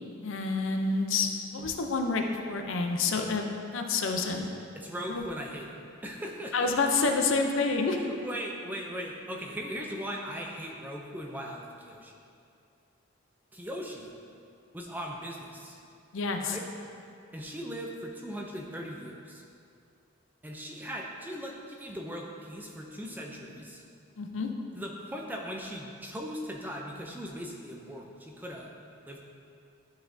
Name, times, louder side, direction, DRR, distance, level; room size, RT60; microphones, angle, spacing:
voice 1, 0.2-3.5 3.7-4.5 5.1-5.2 6.5-8.0 16.1-16.6 24.2-24.5, left 4 dB, 65° left, 4 dB, 0.5 m, -28 dB
voice 2, 4.7-6.9 7.9-12.1 13.5-14.1 14.7-15.8 16.4-16.7 17.3-19.4 20.4-23.8 24.7-28.7 29.1-29.2, equal, 10° right, 0 dB, 0.4 m, -39 dB
10.0 x 4.1 x 2.6 m, 2.5 s
head